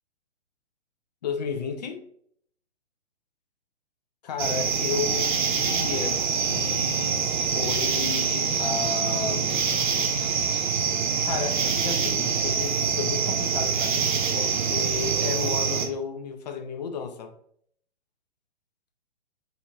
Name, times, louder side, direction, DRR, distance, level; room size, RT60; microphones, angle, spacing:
voice 1, 1.2-2.0 4.2-9.7 11.2-17.3, left 5 dB, 40° left, 0.5 m, -33 dB
sound 1, 4.4-15.9, right 6 dB, 45° right, 0.5 m, -25 dB
3.0 x 2.5 x 3.0 m
figure-of-eight pair, 120°, 34 cm